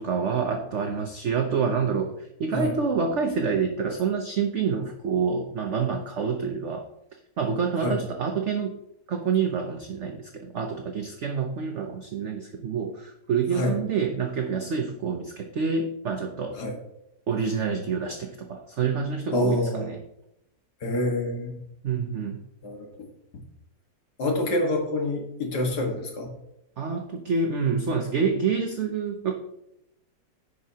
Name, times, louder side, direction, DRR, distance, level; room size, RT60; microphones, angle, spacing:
voice 1, 0.0-6.9 7.4-8.8 9.1-16.6 17.3-20.0 21.8-22.4 26.8-29.3, right 5 dB, 60° right, 4 dB, 0.8 m, -27 dB
voice 2, 19.3-19.9 20.8-21.6 22.6-23.1 24.2-26.3, left 1 dB, 65° left, 1 dB, 2.1 m, -27 dB
15.5 x 5.4 x 2.8 m, 0.83 s
omnidirectional pair, 1.9 m